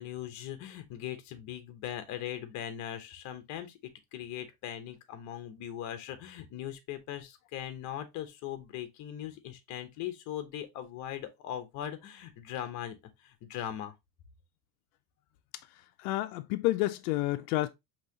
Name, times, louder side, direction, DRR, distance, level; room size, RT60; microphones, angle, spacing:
voice 1, 0.0-3.8 4.1-13.9, left 11 dB, 40° left, 0.9 m, -40 dB
voice 2, 16.0-17.7, left 17 dB, 90° left, 0.6 m, -29 dB
5.5 x 3.0 x 2.7 m
cardioid pair, 160°, 43 cm